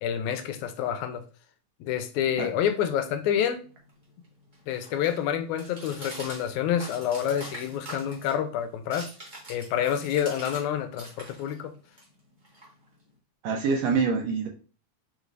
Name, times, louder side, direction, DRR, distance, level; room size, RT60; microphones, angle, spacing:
voice 1, 0.0-1.2 1.8-3.6 4.7-9.1 9.5-11.7, left 9 dB, 85° left, 8 dB, 1.9 m, -28 dB
sound 1, 3.3-10.7 10.9-13.1, right 1 dB, 50° right, 0.5 m, -45 dB
voice 2, 13.4-14.5, right 5 dB, 75° right, 2 dB, 1.7 m, -25 dB
5.2 x 3.1 x 2.4 m, 0.37 s
omnidirectional pair, 3.4 m